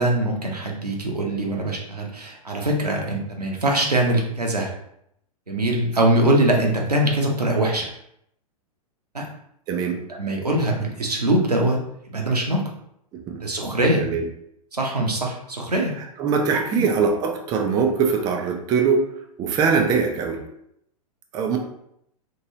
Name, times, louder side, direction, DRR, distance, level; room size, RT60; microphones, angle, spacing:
voice 1, 0.0-4.7 5.5-7.9 9.1-9.3 10.1-11.8 12.1-12.7 13.4-14.0 14.7-15.9 16.7-16.8, right 1 dB, 90° right, 0 dB, 0.8 m, -22 dB
voice 2, 9.7-10.0 13.3-13.4 14.0-14.2 16.2-19.0 19.4-20.4 21.3-21.6, right 5 dB, 20° right, 2 dB, 0.4 m, -21 dB
3.0 x 2.9 x 2.6 m, 0.75 s
figure-of-eight pair, 105°, 20 cm